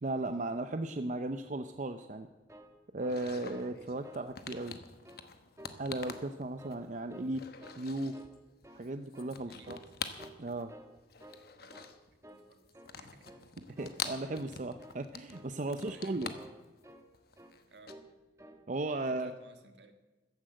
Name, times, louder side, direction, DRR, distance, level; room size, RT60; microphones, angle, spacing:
voice 1, 0.0-2.3 2.9-4.7 5.8-7.4 7.8-8.1 8.7-9.8 10.4-10.7 13.6-16.4 18.7-19.3, right 2 dB, 45° right, 8 dB, 0.6 m, -36 dB
sound 1, 2.2-3.8 4.0-4.3 4.5-5.2 5.6-6.3 6.6-7.3 7.6-7.8 8.1-8.9 9.1-9.4 9.7-9.9 10.2-10.9 11.2-11.4 11.7-12.0 12.2-12.5 12.7-13.0 13.3-13.5 13.8-14.0 14.3-14.5 14.8-15.0 15.3-15.5 15.8-16.1 16.3-17.1 17.4-17.6 17.9-18.1 18.4-18.6, right 1 dB, 15° right, 1.1 m, -52 dB
sound 2, 3.0-7.0 7.3-8.4 8.6-10.7 11.0-12.2 12.5-17.9, left 6 dB, 60° left, 1.1 m, -45 dB
voice 2, 13.0-13.3 15.9-16.3 17.7-17.9 18.9-19.9, right 3 dB, 75° right, 6 dB, 1.6 m, -56 dB
14.0 x 10.0 x 7.7 m, 1.2 s
head